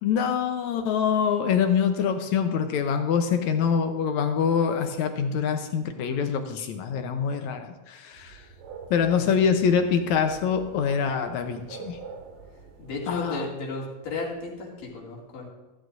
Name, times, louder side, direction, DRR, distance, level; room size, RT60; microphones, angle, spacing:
voice 1, 0.0-8.4 8.9-12.0 13.1-13.4, left 7 dB, 70° left, 6 dB, 2.0 m, -25 dB
sound 1, 8.1-13.3, right 5 dB, 80° right, 3.0 m, -46 dB
voice 2, 12.8-15.5, left 3 dB, 90° left, -3 dB, 4.1 m, -33 dB
14.5 x 14.0 x 2.6 m, 1.1 s
omnidirectional pair, 3.8 m